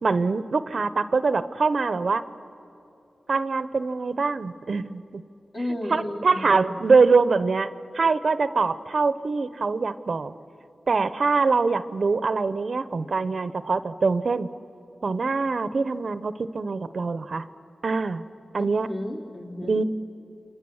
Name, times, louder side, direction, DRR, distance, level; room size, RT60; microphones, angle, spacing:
voice 1, 0.0-2.2 3.3-5.2 5.9-10.3 10.9-14.5 15.0-17.5 17.8-18.2 18.5-18.9 19.6-19.8, right 4 dB, 60° right, 13 dB, 0.7 m, -24 dB
voice 2, 5.5-6.7 18.6-19.8, left 1 dB, 45° left, -1 dB, 3.8 m, -33 dB
28.5 x 26.0 x 7.1 m, 2.8 s
wide cardioid pair, 80°, 0 cm